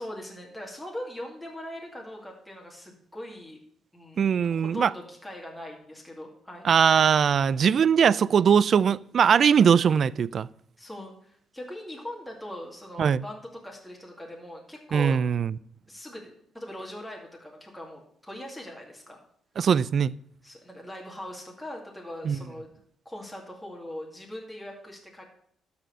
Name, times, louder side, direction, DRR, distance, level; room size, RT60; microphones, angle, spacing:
voice 1, 0.0-3.6 3.9-6.7 10.8-15.2 15.9-19.2 20.4-22.7 23.1-25.2, left 1 dB, 5° left, 2.1 m, -41 dB
voice 2, 4.2-4.9 6.6-10.5 13.0-13.2 14.9-15.5 19.6-20.1 22.3-22.4, right 7 dB, 55° right, 0.3 m, -21 dB
12.5 x 4.3 x 6.6 m
cardioid pair, 90°, 0 cm